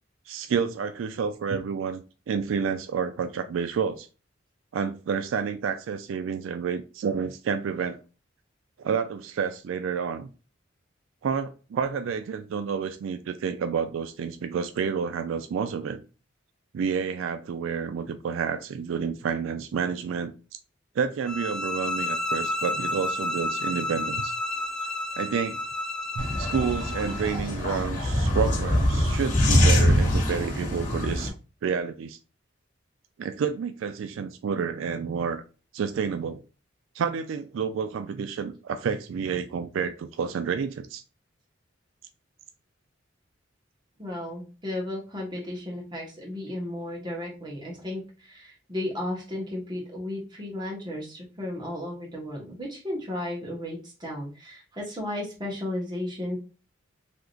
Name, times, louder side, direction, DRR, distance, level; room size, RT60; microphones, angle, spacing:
voice 1, 0.3-2.0 2.3-4.1 4.7-8.0 8.8-10.3 11.2-16.0 16.7-20.3 21.0-24.3 25.2-25.6 26.2-31.3 31.6-32.2 33.2-35.4 35.7-36.4 36.9-41.0, right 6 dB, 80° right, 0.3 m, -29 dB
sound 1, 21.2-27.4, left 1 dB, 5° left, 0.3 m, -31 dB
sound 2, 26.2-31.3, left 1 dB, 40° left, 1.1 m, -23 dB
voice 2, 44.0-56.4, left 1 dB, 25° right, 1.2 m, -34 dB
3.5 x 2.8 x 2.5 m
head